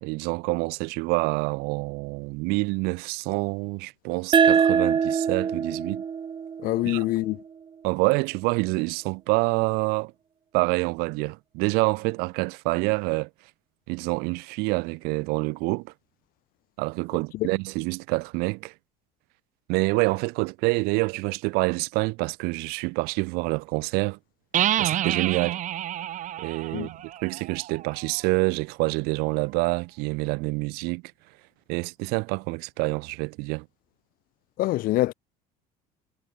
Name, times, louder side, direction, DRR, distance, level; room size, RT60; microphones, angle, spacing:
voice 1, 0.0-6.0 6.8-7.1 7.8-10.1 10.5-13.3 13.9-15.9 16.8-18.7 19.7-24.2 24.8-25.6 26.4-31.0 31.7-33.7, right 27 dB, 75° right, 1.9 m, -27 dB
sound 1, 4.3-7.5, right 7 dB, 30° right, 1.7 m, -23 dB
voice 2, 6.6-7.4 17.3-17.5 26.7-26.9 34.6-35.1, left 17 dB, 60° left, 2.1 m, -25 dB
sound 2, 24.5-28.2, right 12 dB, 50° right, 3.9 m, -28 dB
supercardioid pair, 105°, 16 cm